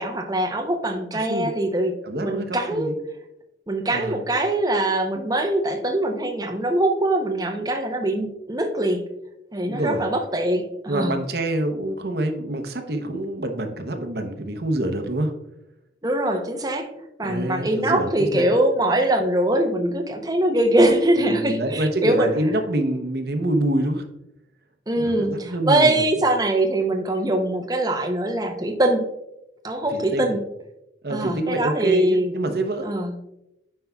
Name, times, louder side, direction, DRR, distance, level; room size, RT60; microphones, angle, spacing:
voice 1, 0.0-1.9 2.2-2.9 3.7-9.0 9.5-11.1 16.0-16.9 17.2-22.3 24.9-29.1 29.6-30.4 31.1-32.5 32.8-33.1, right 1 dB, 20° right, 5 dB, 0.7 m, -22 dB
voice 2, 1.1-1.5 2.0-3.0 3.9-4.1 9.6-10.1 10.9-15.3 17.2-18.5 21.2-24.1 25.0-26.0 29.9-30.3 31.0-32.9, right 1 dB, 60° right, 6 dB, 0.8 m, -26 dB
9.3 x 5.4 x 2.3 m, 0.87 s
head